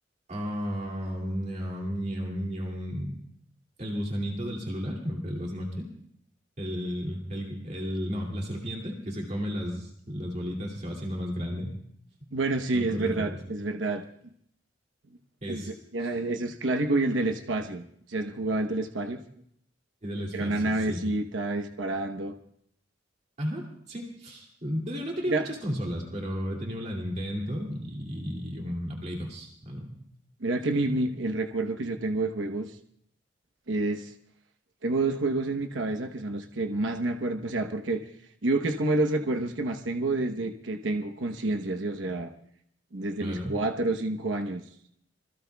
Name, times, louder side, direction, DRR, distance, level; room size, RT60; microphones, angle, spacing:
voice 1, 0.3-3.2 3.8-5.9 6.6-11.8 12.2-12.3 12.7-13.4 15.4-15.7 16.0-16.2 20.0-21.0 23.4-30.0 30.8-31.0 43.2-43.6, equal, 40° right, -1 dB, 2.5 m, -33 dB
voice 2, 12.3-14.0 15.5-19.2 20.3-22.3 25.3-25.4 30.4-32.7 33.7-34.1 34.8-38.0 38.4-42.3 42.9-44.6, right 2 dB, 90° right, 5 dB, 1.0 m, -28 dB
26.5 x 22.0 x 2.3 m, 0.69 s
head